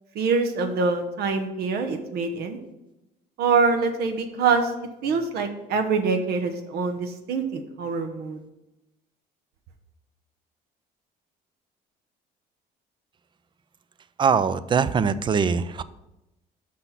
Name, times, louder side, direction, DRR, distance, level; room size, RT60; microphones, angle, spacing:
voice 1, 0.1-2.6 3.4-4.7 5.0-8.4, right 4 dB, 70° right, 5 dB, 0.9 m, -24 dB
voice 2, 14.2-15.8, right 6 dB, 30° right, 15 dB, 0.4 m, -22 dB
6.1 x 5.8 x 5.7 m, 0.95 s
cardioid pair, 110°, 17 cm